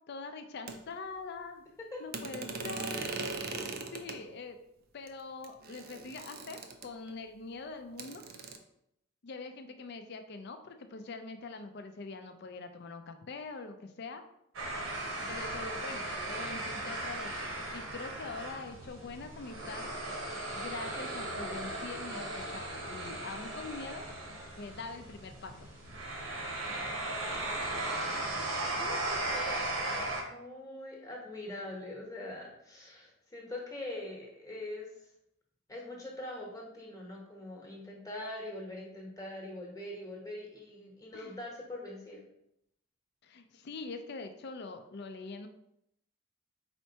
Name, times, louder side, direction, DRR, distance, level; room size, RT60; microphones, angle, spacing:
voice 1, 0.1-1.6 2.0-3.1 3.9-4.6 4.9-8.2 9.2-14.2 15.2-17.3 17.7-19.9 20.5-24.1 24.6-25.5 41.1-41.4 43.2-45.5, left 3 dB, 55° left, 7 dB, 0.4 m, -43 dB
sound 1, 0.7-0.8 2.1-4.2 5.1-5.2 5.4-7.1 8.0-8.6, right 3 dB, 45° right, 0.4 m, -39 dB
sound 2, 14.5-30.2, right 2 dB, 75° right, 1.0 m, -37 dB
voice 2, 28.6-34.9 35.7-42.2, left 1 dB, 15° left, -1 dB, 1.0 m, -43 dB
4.4 x 4.3 x 2.8 m, 0.79 s
head